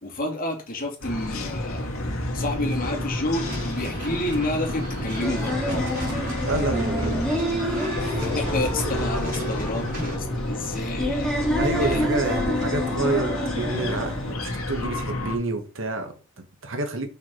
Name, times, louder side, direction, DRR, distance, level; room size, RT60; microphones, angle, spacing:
voice 1, 0.0-1.9 2.3-5.6 8.0-11.3 11.8-12.1, left 1 dB, 40° left, 2.2 m, -30 dB
sound 1, 1.0-15.4, left 1 dB, 75° left, 1.8 m, -30 dB
sound 2, 3.3-10.2, right 1 dB, 40° right, 4.6 m, -36 dB
sound 3, 5.2-14.3, equal, 5° left, 2.5 m, -29 dB
voice 2, 6.4-8.0 11.5-17.1, right 2 dB, 65° right, 1.5 m, -29 dB
6.0 x 5.8 x 4.4 m
head